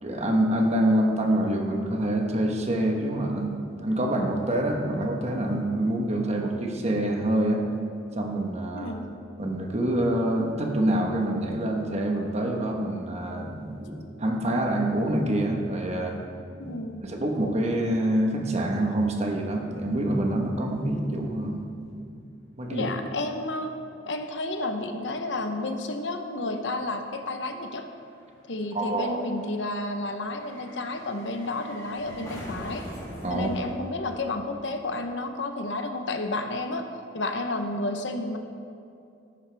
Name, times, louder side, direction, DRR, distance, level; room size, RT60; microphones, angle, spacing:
voice 1, 0.0-7.6 8.2-8.9 9.4-16.2 16.6-16.7 17.0-22.1 22.6-22.9 28.7-29.2 33.2-33.5, right 1 dB, 35° right, 2 dB, 1.2 m, -26 dB
voice 2, 8.7-9.1 16.6-17.0 22.7-23.7 24.1-27.9 28.5-32.9 33.3-36.9 37.1-38.4, left 2 dB, 75° left, 6 dB, 0.9 m, -31 dB
sound 1, 24.6-35.0 35.3-35.4, equal, 20° left, 2.9 m, -45 dB
14.0 x 11.0 x 3.4 m, 2.6 s
head